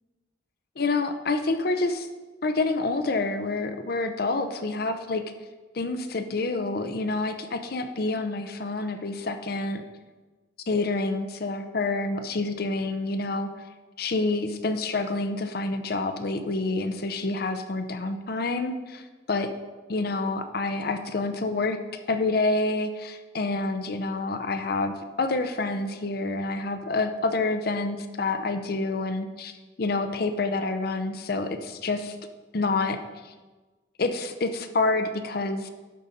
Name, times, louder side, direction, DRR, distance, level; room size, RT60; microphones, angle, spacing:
voice 1, 0.8-2.1 2.4-5.2 5.7-9.8 10.7-13.5 14.0-19.5 19.9-21.8 22.1-29.5 29.8-32.2 32.5-33.0 33.2-33.3 34.0-35.7, left 3 dB, 55° left, 8 dB, 0.6 m, -28 dB
12.0 x 5.1 x 4.2 m, 1.3 s
head